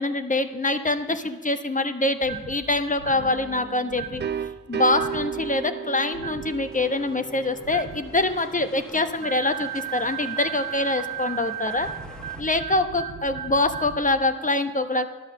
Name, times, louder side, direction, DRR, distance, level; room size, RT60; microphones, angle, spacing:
voice 1, 0.0-4.2 4.7-11.9 12.4-15.1, left 2 dB, 25° left, 8 dB, 0.9 m, -25 dB
sound 1, 2.2-2.6 3.0-3.3 3.9-4.3 4.9-5.3 6.1-6.5 7.6-8.0 9.2-14.0, right 10 dB, 65° right, 1.3 m, -35 dB
sound 2, 3.1-8.8, right 7 dB, 35° right, 0.4 m, -34 dB
sound 3, 6.2-12.4, left 1 dB, ahead, 1.5 m, -47 dB
11.5 x 7.4 x 6.6 m, 1.4 s
cardioid pair, 45°, 33 cm